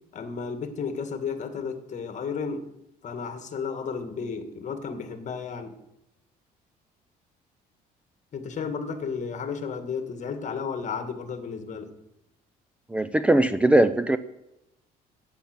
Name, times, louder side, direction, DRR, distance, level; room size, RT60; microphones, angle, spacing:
voice 1, 0.1-2.7 3.0-5.8 8.3-11.9, left 5 dB, 45° left, 8 dB, 1.7 m, -33 dB
voice 2, 12.9-14.2, right 1 dB, 5° right, 12 dB, 0.5 m, -20 dB
11.5 x 8.8 x 6.0 m, 0.89 s
cardioid pair, 110°, 17 cm